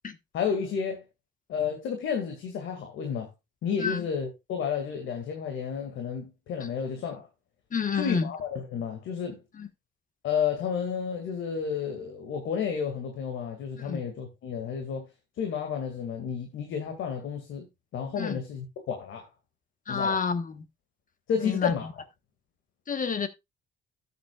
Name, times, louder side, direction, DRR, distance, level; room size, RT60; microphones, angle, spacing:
voice 1, 0.3-1.0 1.5-3.3 3.6-7.3 8.0-9.4 10.2-15.1 15.4-17.7 17.9-19.3 19.9-20.2 21.3-21.9, left 7 dB, 80° left, 2.3 m, -31 dB
voice 2, 7.7-8.3 9.6-9.7 13.8-14.0 18.2-18.4 19.9-20.6 21.4-21.7 22.9-23.3, left 5 dB, 40° left, 1.3 m, -29 dB
13.0 x 8.1 x 2.4 m
cardioid pair, 90°, 20 cm